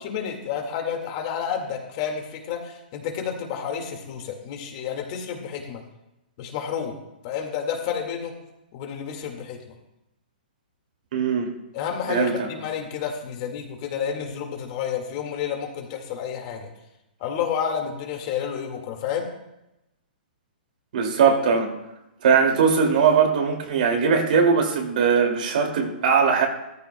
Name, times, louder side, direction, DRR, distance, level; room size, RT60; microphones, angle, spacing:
voice 1, 0.0-5.8 6.4-6.9 7.2-8.4 8.7-9.6 11.7-16.7 17.2-19.3, left 8 dB, 40° left, 3 dB, 1.9 m, -30 dB
voice 2, 11.1-11.5 12.1-12.5 20.9-21.7 22.2-26.5, right 6 dB, 60° right, 2 dB, 2.4 m, -20 dB
14.0 x 13.5 x 2.2 m, 0.91 s
hypercardioid pair, 150°, 5 cm